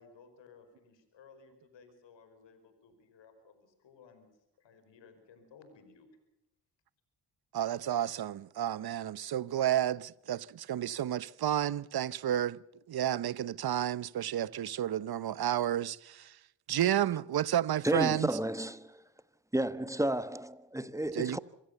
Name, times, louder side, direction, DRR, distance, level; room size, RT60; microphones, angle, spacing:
voice 1, 0.0-4.3 4.6-6.1, left 5 dB, 80° left, 5.1 m, -58 dB
voice 2, 7.5-12.6 12.9-16.3 16.7-18.3 21.1-21.4, right 11 dB, 60° right, 0.9 m, -31 dB
voice 3, 17.8-19.0 19.5-21.4, right 1 dB, 5° right, 1.4 m, -32 dB
26.0 x 17.0 x 6.8 m
cardioid pair, 55°, 43 cm